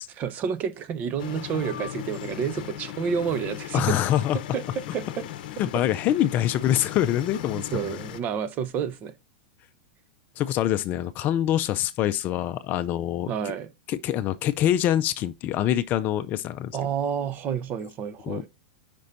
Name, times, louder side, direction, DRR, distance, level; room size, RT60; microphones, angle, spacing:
voice 1, 0.1-4.0 4.5-5.3 7.5-9.1 13.3-13.7 16.7-18.5, right 7 dB, 35° right, 0.8 m, -29 dB
sound 1, 1.2-8.2, left 12 dB, 65° left, 0.8 m, -38 dB
voice 2, 3.7-4.4 5.6-7.7 10.4-13.3 13.9-16.7 18.2-18.5, left 12 dB, 35° left, 0.5 m, -25 dB
5.3 x 4.2 x 5.2 m
hypercardioid pair, 125°, 5 cm